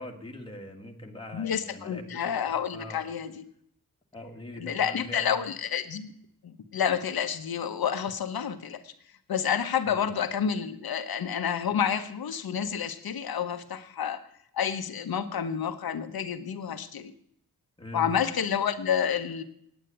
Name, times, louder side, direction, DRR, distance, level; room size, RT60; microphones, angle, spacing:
voice 1, 0.0-2.2 2.7-3.0 4.1-5.4 9.9-10.1 17.8-18.1, left 1 dB, 15° left, 1 dB, 1.8 m, -42 dB
voice 2, 1.3-3.4 4.6-6.1 6.4-8.9 9.3-14.2 14.5-17.1 17.9-19.4, left 8 dB, 85° left, 9 dB, 1.1 m, -29 dB
9.5 x 9.2 x 9.0 m, 0.69 s
wide cardioid pair, 130°, 36 cm